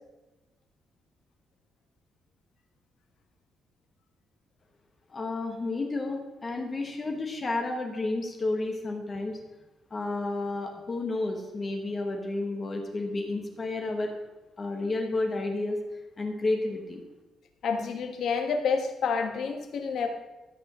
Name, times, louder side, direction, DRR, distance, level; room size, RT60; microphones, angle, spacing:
voice 1, 5.1-9.4 9.9-14.1 14.6-15.8 16.2-17.0, left 2 dB, 25° left, 3 dB, 1.2 m, -31 dB
voice 2, 17.6-20.1, left 5 dB, 60° left, 5 dB, 1.5 m, -28 dB
13.0 x 6.9 x 6.1 m, 1.1 s
cardioid pair, 180°, 0 cm